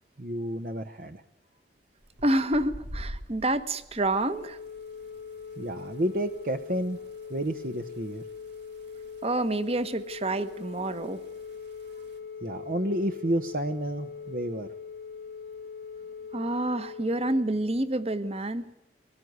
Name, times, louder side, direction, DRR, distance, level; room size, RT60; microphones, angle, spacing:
voice 1, 0.2-1.2 5.6-7.0 7.3-8.2 11.9-12.0 12.4-14.7, right 1 dB, 50° right, 7 dB, 0.9 m, -30 dB
sound 1, 2.0-12.2, equal, 75° right, 2.4 m, -48 dB
voice 2, 2.2-4.6 9.2-11.2 16.3-18.6, right 1 dB, 35° right, 12 dB, 1.3 m, -28 dB
Telephone, 4.3-17.4, left 6 dB, 80° left, 1.7 m, -42 dB
23.0 x 18.5 x 9.5 m, 0.86 s
head